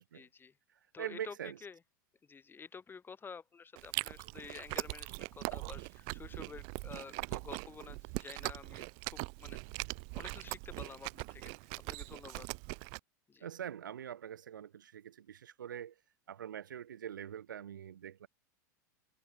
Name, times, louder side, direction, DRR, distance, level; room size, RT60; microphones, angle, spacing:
voice 1, 0.1-0.5 0.9-1.8 2.2-9.6 10.1-12.5 13.3-13.5, left 5 dB, 20° left, 5.2 m, -50 dB
voice 2, 0.7-1.6 13.4-15.9 16.3-18.3, right 9 dB, 85° right, 1.2 m, -44 dB
Chewing mastication, 3.8-13.0, right 40 dB or more, 55° right, 2.8 m, -41 dB
hypercardioid pair, 95°, 10 cm